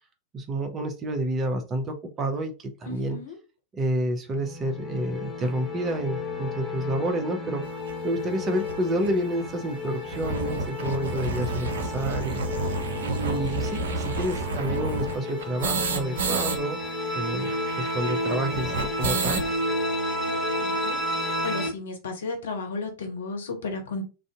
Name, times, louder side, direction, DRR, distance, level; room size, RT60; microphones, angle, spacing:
voice 1, 0.3-3.2 3.7-12.7 13.0-16.8 17.1-19.4, right 1 dB, 25° right, 0.6 m, -29 dB
voice 2, 2.9-3.4 20.3-24.0, left 3 dB, 65° left, 0.9 m, -34 dB
sound 1, 4.3-21.7, left 1 dB, 5° right, 1.1 m, -32 dB
sound 2, 7.9-8.0 8.7-8.8 9.0-9.1 9.4-9.5 9.9-16.6 16.8-16.9 17.1-19.5, right 3 dB, 65° right, 0.6 m, -30 dB
2.5 x 2.4 x 3.5 m
figure-of-eight pair, 90°, 0 cm